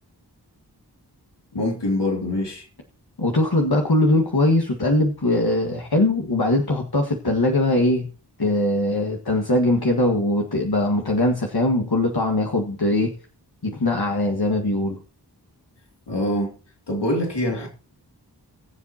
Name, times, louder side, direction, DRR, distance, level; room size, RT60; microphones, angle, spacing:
voice 1, 1.5-2.7 16.1-16.6 16.9-17.7, left 1 dB, 85° left, 2.6 m, -24 dB
voice 2, 3.2-8.1 8.4-13.1 13.6-15.0, left 1 dB, 65° left, 1.8 m, -21 dB
21.5 x 7.5 x 2.9 m
wide cardioid pair, 45°, 41 cm